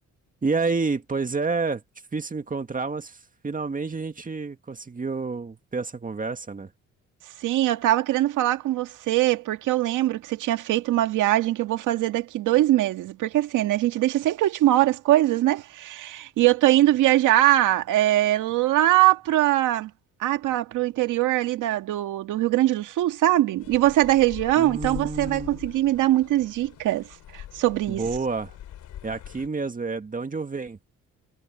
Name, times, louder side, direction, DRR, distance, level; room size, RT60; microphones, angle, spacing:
voice 1, 0.4-1.8 2.1-6.7 24.6-25.6 27.9-28.6 29.0-30.8, right 4 dB, 25° right, 2.0 m, -29 dB
voice 2, 7.4-19.9 20.2-27.1 27.3-28.0, right 15 dB, 90° right, 2.0 m, -22 dB
sound 1, 23.6-29.5, left 11 dB, 75° left, 4.3 m, -42 dB
cardioid pair, 90°, 30 cm